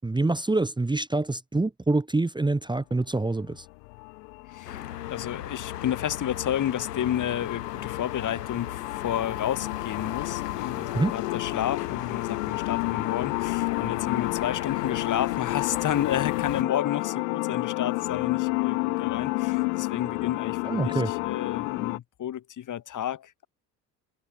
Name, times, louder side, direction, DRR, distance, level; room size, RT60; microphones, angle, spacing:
voice 1, 0.0-3.6 10.9-11.1 20.6-21.1, right 2 dB, 10° right, 1.1 m, -26 dB
sound 1, 3.4-22.0, left 32 dB, 70° left, 0.9 m, -31 dB
voice 2, 4.5-4.8 5.1-23.5, left 10 dB, 40° left, 1.5 m, -31 dB
sound 2, 4.7-16.6, left 11 dB, 85° left, 1.5 m, -37 dB
hypercardioid pair, 60°, 46 cm